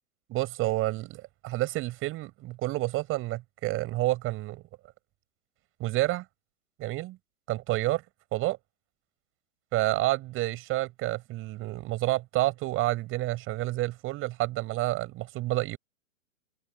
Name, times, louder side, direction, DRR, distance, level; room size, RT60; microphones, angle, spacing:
voice 1, 0.3-4.6 5.8-6.2 6.8-7.2 7.5-8.0 8.3-8.6 9.7-15.8, right 17 dB, 30° right, 7.5 m, -29 dB
hypercardioid pair, 125°, 43 cm